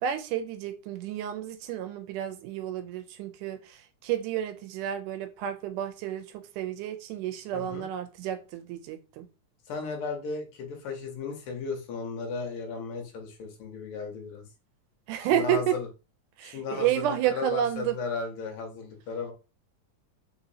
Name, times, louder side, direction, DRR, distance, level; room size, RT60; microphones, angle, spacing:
voice 1, 0.0-9.3 15.1-15.8 16.4-18.0, right 11 dB, 85° right, 2.2 m, -31 dB
voice 2, 7.5-7.9 9.7-14.4 15.3-15.9 16.4-19.3, left 4 dB, 65° left, 1.5 m, -35 dB
4.3 x 4.1 x 2.8 m
omnidirectional pair, 3.6 m